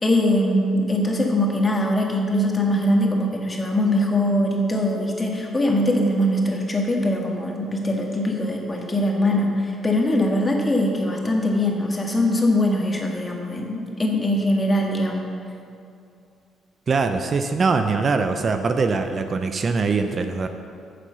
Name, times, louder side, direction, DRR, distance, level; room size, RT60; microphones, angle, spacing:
voice 1, 0.0-15.3, left 1 dB, 25° left, 0 dB, 1.8 m, -22 dB
voice 2, 16.9-20.5, right 4 dB, 40° right, 7 dB, 0.6 m, -22 dB
9.2 x 6.7 x 6.4 m, 2.5 s
cardioid pair, 85°, 0 cm